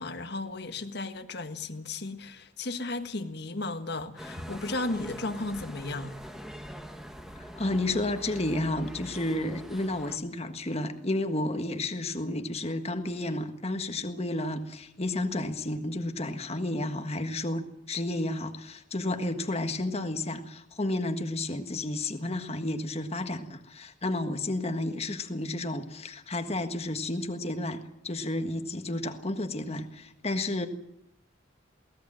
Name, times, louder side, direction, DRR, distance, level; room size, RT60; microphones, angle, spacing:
voice 1, 0.0-6.1, left 2 dB, 60° left, 1.6 m, -35 dB
Walking Warmoesstraat, 4.2-10.2, equal, ahead, 1.7 m, -44 dB
voice 2, 7.6-27.8 28.0-30.7, left 1 dB, 35° left, 1.6 m, -31 dB
23.0 x 18.0 x 7.6 m
head